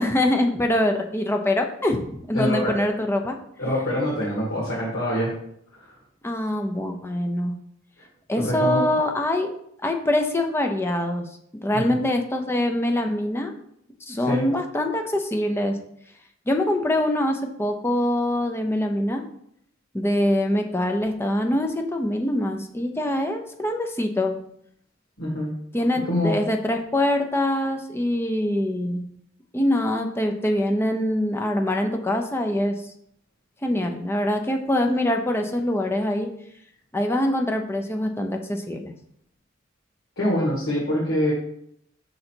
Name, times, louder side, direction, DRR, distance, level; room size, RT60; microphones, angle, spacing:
voice 1, 0.0-3.4 6.2-7.5 8.3-9.6 9.8-11.3 11.6-13.5 14.0-15.8 16.5-19.2 19.9-24.4 25.7-29.0 29.5-32.9 33.6-36.3 36.9-38.9, left 1 dB, 10° left, 4 dB, 0.6 m, -24 dB
voice 2, 2.3-2.8 3.6-5.3 5.8-5.9 8.4-8.8 11.7-12.0 14.2-14.5 25.2-25.5 26.0-26.3 40.2-41.3, left 1 dB, 90° left, -6 dB, 1.9 m, -25 dB
5.5 x 3.8 x 4.4 m, 0.72 s
head